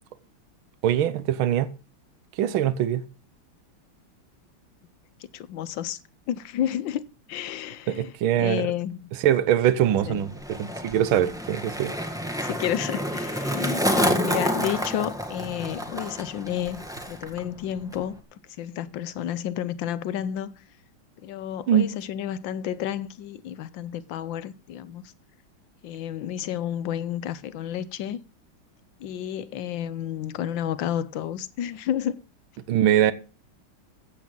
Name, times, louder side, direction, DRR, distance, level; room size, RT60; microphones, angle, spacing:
voice 1, 0.8-1.7 2.4-3.0 7.9-8.7 9.2-11.9 21.7-21.9 32.7-33.1, right 11 dB, 70° right, 1.7 m, -22 dB
voice 2, 5.3-6.0 6.3-8.1 8.4-9.1 10.1-10.3 12.4-20.6 21.2-25.0 25.8-28.2 29.0-32.2, left 10 dB, 70° left, 1.4 m, -31 dB
Skateboard, 9.8-17.4 17.7-18.2, equal, ahead, 1.6 m, -29 dB
15.0 x 8.5 x 5.4 m
omnidirectional pair, 2.4 m